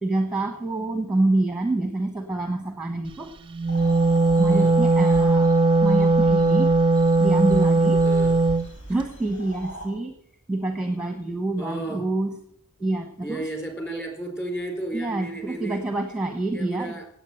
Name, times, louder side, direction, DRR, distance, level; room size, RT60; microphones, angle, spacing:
voice 1, 0.0-3.3 4.4-5.5 5.8-6.8 7.2-8.0 8.9-10.2 10.5-12.4 12.8-13.4 14.9-17.0, right 2 dB, 5° right, 6 dB, 1.1 m, -26 dB
Wind instrument woodwind instrument, 3.5-8.7, right 3 dB, 25° right, 0.6 m, -19 dB
sound 1, 3.7-9.9, right 1 dB, 55° left, 5.4 m, -40 dB
voice 2, 8.0-8.4 11.6-12.1 13.2-15.8 16.5-17.1, right 1 dB, 10° left, 3 dB, 4.3 m, -33 dB
17.5 x 8.4 x 7.8 m, 0.67 s
head